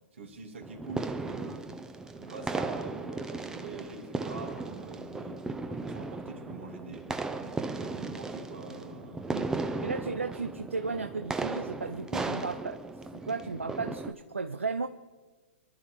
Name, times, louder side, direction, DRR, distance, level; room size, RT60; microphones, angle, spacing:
voice 1, 0.1-1.7 2.2-7.1 7.4-9.7, right 3 dB, 75° right, 2 dB, 2.6 m, -44 dB
sound 1, 0.6-14.1, right 3 dB, 10° right, 0.7 m, -36 dB
voice 2, 9.3-12.8 13.1-14.9, right 4 dB, 90° right, 10 dB, 0.5 m, -35 dB
24.5 x 12.0 x 3.2 m, 1.3 s
figure-of-eight pair, 115°, 7 cm